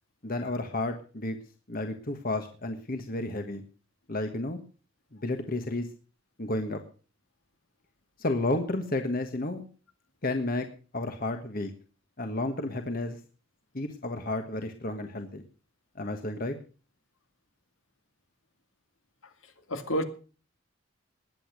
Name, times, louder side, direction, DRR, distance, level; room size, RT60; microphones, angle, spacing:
voice 1, 0.2-1.4 1.7-3.6 4.1-4.6 5.1-5.9 6.4-6.8 8.2-9.7 10.2-10.7 10.9-11.7 12.2-13.2 13.7-15.4 15.9-16.6, left 2 dB, 45° left, 6 dB, 1.4 m, -31 dB
voice 2, 19.2-20.0, equal, 85° left, 8 dB, 2.2 m, -32 dB
20.5 x 8.7 x 6.2 m, 0.39 s
head